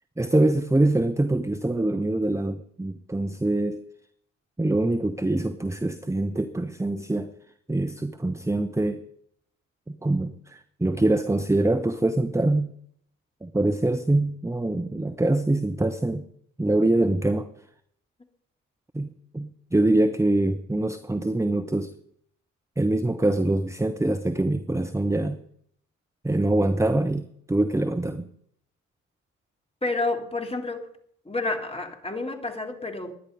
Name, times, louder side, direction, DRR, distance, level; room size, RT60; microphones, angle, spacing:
voice 1, 0.2-3.8 4.6-7.3 7.7-9.0 9.9-12.7 13.4-16.3 16.6-17.5 18.9-21.9 22.8-25.4 26.2-28.3, right 2 dB, 5° right, 1.1 m, -24 dB
voice 2, 29.8-30.9 31.2-33.1, left 2 dB, 15° left, 3.3 m, -29 dB
22.5 x 10.0 x 5.4 m
hypercardioid pair, 50°, 39 cm